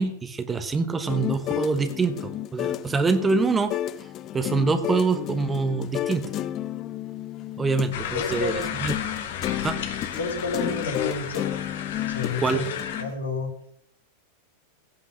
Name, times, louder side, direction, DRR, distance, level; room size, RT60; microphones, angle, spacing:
voice 1, 0.0-3.7 4.3-6.3 7.6-8.5 8.8-8.9 9.6-9.8 12.4-12.6, right 4 dB, 15° right, 10 dB, 1.1 m, -25 dB
sound 1, 1.1-13.1, left 12 dB, 35° left, 0.5 m, -32 dB
sound 2, 7.9-13.0, left 8 dB, 55° left, 1.4 m, -33 dB
voice 2, 8.1-8.6 10.2-11.5 12.0-12.6 13.0-13.5, left 3 dB, 70° left, 2 dB, 2.4 m, -30 dB
16.0 x 5.9 x 6.3 m, 0.69 s
figure-of-eight pair, 90°, 0 cm